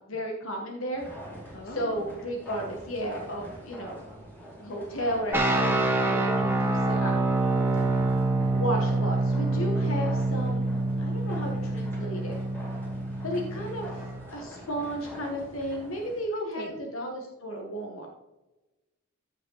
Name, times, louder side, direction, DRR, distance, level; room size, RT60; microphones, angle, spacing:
voice 1, 0.1-1.0 1.6-4.0 4.6-7.3 8.5-10.7 11.0-12.3 13.2-18.1, equal, 75° left, 1 dB, 1.5 m, -33 dB
sound 1, 0.9-16.2, equal, 10° left, 2.8 m, -45 dB
voice 2, 1.5-2.0 16.3-16.8, left 2 dB, 50° left, 2 dB, 2.1 m, -38 dB
sound 2, 5.3-14.2, right 2 dB, 10° right, 1.1 m, -26 dB
14.5 x 5.4 x 4.0 m, 1.0 s
head